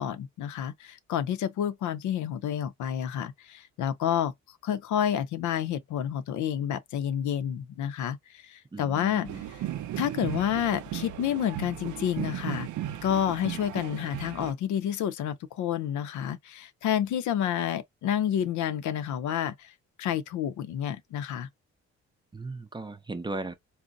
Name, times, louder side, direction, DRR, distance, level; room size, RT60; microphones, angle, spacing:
voice 1, 0.0-4.3 4.6-9.6 10.0-12.7 13.0-21.5, left 10 dB, 75° left, 0.6 m, -29 dB
voice 2, 8.7-9.4 22.3-23.5, right 3 dB, 15° right, 0.5 m, -37 dB
sound 1, 9.2-14.5, right 11 dB, 75° right, 0.6 m, -36 dB
3.9 x 2.1 x 2.5 m
cardioid pair, 90°, 30 cm